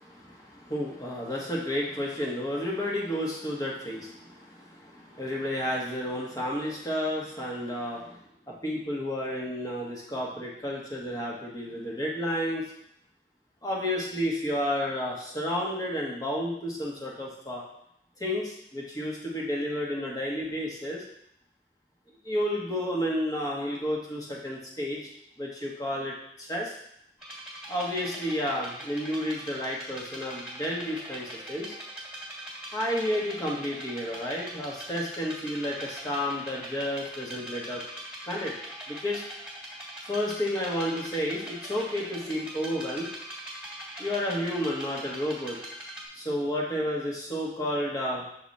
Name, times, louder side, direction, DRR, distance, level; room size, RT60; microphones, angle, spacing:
voice 1, 0.0-8.2 8.5-12.6 13.6-17.6 18.2-21.0 22.2-25.0 25.4-26.7 27.7-31.7 32.7-37.8 38.2-38.5 38.9-39.2 40.1-43.1 44.0-45.6 46.1-48.2, equal, 20° left, -3 dB, 1.3 m, -31 dB
sound 1, 27.2-46.1, right 1 dB, 5° right, 1.9 m, -42 dB
6.4 x 4.0 x 4.2 m, 0.75 s
head